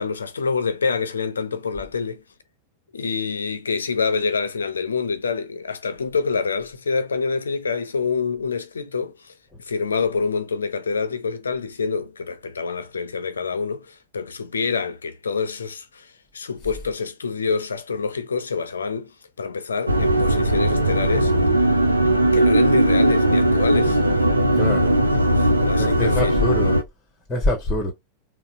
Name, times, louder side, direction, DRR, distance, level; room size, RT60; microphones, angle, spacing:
voice 1, 0.0-2.2 2.9-9.3 9.6-21.3 22.3-24.0 25.4-26.4, left 5 dB, 75° left, 0.5 m, -26 dB
sound 1, 19.9-26.8, right 1 dB, 85° right, 0.5 m, -18 dB
voice 2, 24.6-25.0 25.8-26.8 27.3-27.9, left 1 dB, 20° left, 0.9 m, -24 dB
4.0 x 2.0 x 2.4 m
figure-of-eight pair, 90°, 0 cm